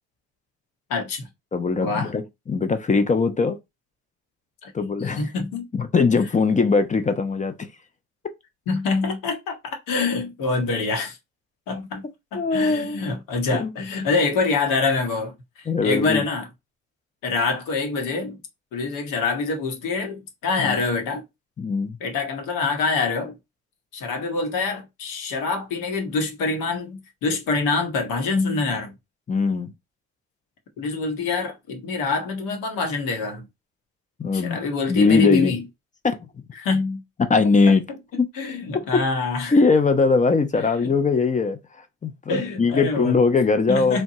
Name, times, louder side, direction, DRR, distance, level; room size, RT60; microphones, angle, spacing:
voice 1, 0.9-1.3 1.8-2.1 4.6-4.7 5.0-5.7 8.7-11.2 11.7-12.0 12.3-16.5 17.2-18.4 18.7-21.2 22.0-23.3 23.9-28.9 30.8-33.5 34.3-35.6 36.6-37.0 38.1-39.6 40.8-40.9 42.3-43.2 43.7-44.0, left 3 dB, 70° left, 0.9 m, -25 dB
voice 2, 1.5-3.6 4.7-5.2 5.7-7.7 12.3-13.1 13.5-13.7 15.7-16.2 20.6-20.8 21.6-22.0 29.3-29.7 34.2-34.6 34.9-35.5 36.0-36.2 37.3-37.8 38.2-38.3 39.5-41.6 42.0-44.0, left 4 dB, 20° left, 0.5 m, -20 dB
2.9 x 2.2 x 2.7 m
hypercardioid pair, 55°, 34 cm